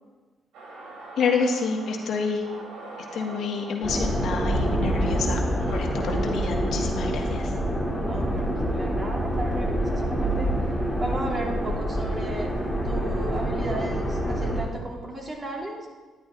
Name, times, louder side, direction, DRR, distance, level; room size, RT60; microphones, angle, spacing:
sound 1, 0.5-8.7, right 2 dB, 85° right, 2.4 m, -44 dB
voice 1, 1.2-2.4 3.1-5.4 5.7-7.5, left 5 dB, 70° left, 1 dB, 1.6 m, -28 dB
sound 2, 3.8-14.6, equal, 10° right, 2.8 m, -26 dB
voice 2, 7.9-10.6 11.0-12.5 12.8-15.9, right 1 dB, 35° right, -1 dB, 2.7 m, -34 dB
11.0 x 11.0 x 3.6 m, 1.3 s
cardioid pair, 90°, 0 cm